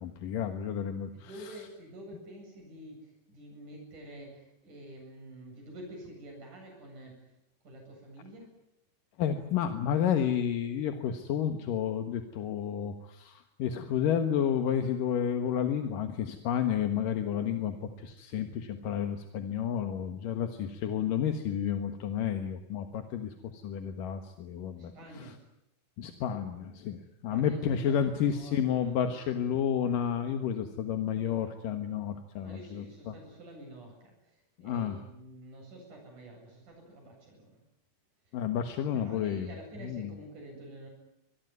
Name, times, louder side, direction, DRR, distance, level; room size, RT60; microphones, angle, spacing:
voice 1, 0.0-1.6 9.2-25.4 26.0-33.1 34.6-35.0 38.3-39.5 39.8-40.1, left 8 dB, 80° left, 6 dB, 3.1 m, -31 dB
voice 2, 1.1-7.1 7.6-8.5 24.8-25.3 27.3-27.6 27.9-28.9 32.4-34.1 34.6-37.6 38.9-40.9, right 1 dB, 65° right, 1 dB, 9.6 m, -48 dB
26.0 x 20.5 x 9.6 m, 0.82 s
omnidirectional pair, 3.8 m